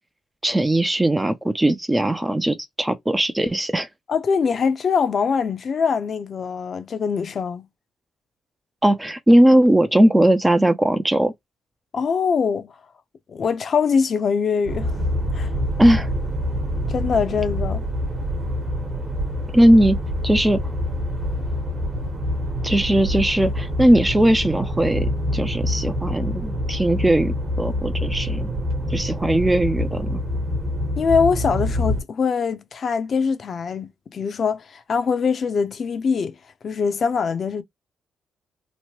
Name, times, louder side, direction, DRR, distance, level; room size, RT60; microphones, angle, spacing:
voice 1, 0.4-3.9 8.8-11.3 15.8-16.1 19.5-20.6 22.6-28.5 28.9-30.2, right 1 dB, 10° right, 0.4 m, -19 dB
voice 2, 4.1-7.7 11.9-12.7 13.3-14.9 15.3-15.5 16.9-17.8 31.0-36.4 36.6-37.6, left 6 dB, 50° left, 0.6 m, -23 dB
sound 1, 14.7-32.0, left 1 dB, 40° right, 1.0 m, -26 dB
3.0 x 2.1 x 3.0 m
cardioid pair, 90°, 0 cm